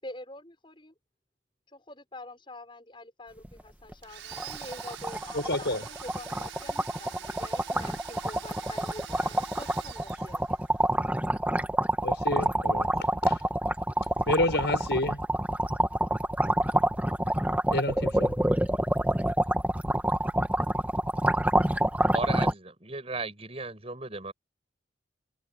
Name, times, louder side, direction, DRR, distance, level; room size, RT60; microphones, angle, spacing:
voice 1, 0.0-0.9 1.7-10.4, left 2 dB, 25° left, 6.7 m, -46 dB
sound 1, 3.4-3.6 3.9-4.0 4.3-22.5, right 1 dB, 10° right, 1.6 m, -27 dB
Domestic sounds home sounds, 4.0-10.8, right 9 dB, 75° right, 5.8 m, -45 dB
voice 2, 5.3-5.9 12.0-13.5 14.3-15.2 17.7-18.4, left 1 dB, 65° left, 7.0 m, -29 dB
voice 3, 22.1-24.3, right 3 dB, 30° right, 7.8 m, -35 dB
head